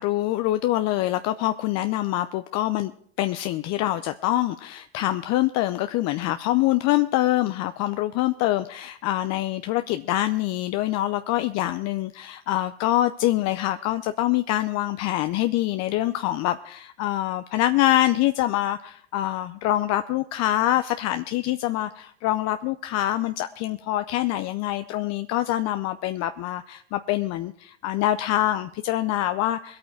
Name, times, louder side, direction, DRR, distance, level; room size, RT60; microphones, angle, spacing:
voice 1, 0.0-2.9 3.2-29.8, left 14 dB, 55° left, 10 dB, 0.6 m, -25 dB
20.5 x 8.7 x 4.6 m, 0.63 s
hypercardioid pair, 85°, 32 cm